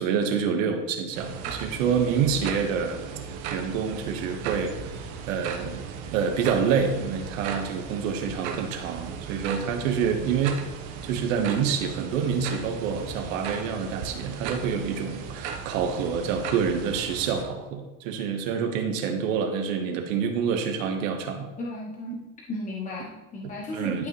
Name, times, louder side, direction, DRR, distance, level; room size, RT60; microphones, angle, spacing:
voice 1, 0.0-3.0 3.5-4.7 5.3-5.8 6.1-10.6 11.0-21.5 23.7-24.1, right 6 dB, 80° right, 5 dB, 1.5 m, -27 dB
sound 1, 1.1-17.5, right 6 dB, 60° right, 1.2 m, -37 dB
voice 2, 21.6-22.2 22.5-24.1, left 2 dB, 20° left, -3 dB, 1.0 m, -35 dB
12.0 x 5.6 x 3.2 m, 1.1 s
supercardioid pair, 135°, 39 cm